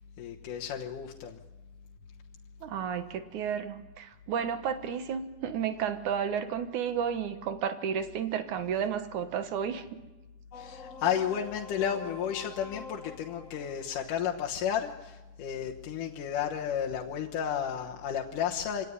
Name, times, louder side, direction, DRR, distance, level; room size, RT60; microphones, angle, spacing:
voice 1, 0.2-1.4 10.6-18.8, left 8 dB, 80° left, -1 dB, 2.8 m, -32 dB
voice 2, 2.6-10.0, right 8 dB, 75° right, 9 dB, 2.7 m, -32 dB
sound 1, 10.5-14.7, left 4 dB, 60° left, 0.8 m, -48 dB
25.0 x 17.5 x 9.7 m, 1.1 s
omnidirectional pair, 3.6 m